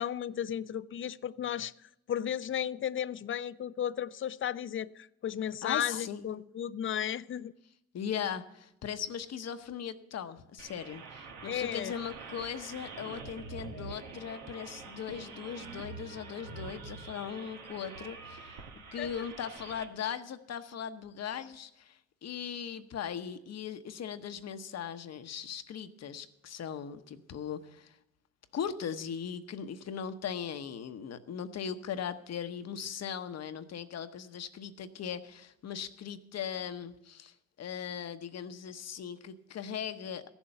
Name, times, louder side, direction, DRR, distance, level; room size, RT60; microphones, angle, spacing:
voice 1, 0.0-1.7 2.1-7.5 11.5-11.9 19.0-19.1, left 9 dB, 40° left, 0.5 m, -34 dB
voice 2, 5.6-6.2 7.9-18.6 18.9-28.0 28.5-40.3, left 8 dB, 55° left, 1.0 m, -39 dB
sound 1, 10.6-19.9, right 4 dB, 80° right, 1.6 m, -46 dB
14.5 x 7.3 x 6.7 m
supercardioid pair, 55°, 30 cm